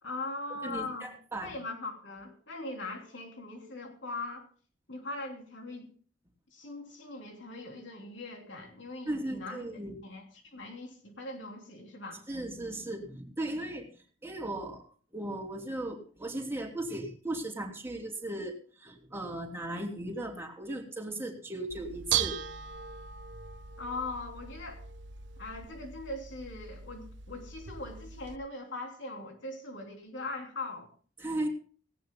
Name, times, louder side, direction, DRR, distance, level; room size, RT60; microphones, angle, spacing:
voice 1, 0.0-1.1 1.4-4.5 4.9-5.9 6.5-12.2 23.8-24.8 25.4-30.9, left 2 dB, 80° left, 2 dB, 3.3 m, -40 dB
voice 2, 0.6-1.5 9.0-10.0 12.3-13.9 14.2-14.8 15.1-22.4 31.2-31.5, right 1 dB, 15° right, 1 dB, 3.1 m, -37 dB
Bell / Dishes pots and pans, 21.7-28.4, right 9 dB, 70° right, 0.8 m, -38 dB
18.5 x 17.5 x 2.3 m, 0.41 s
head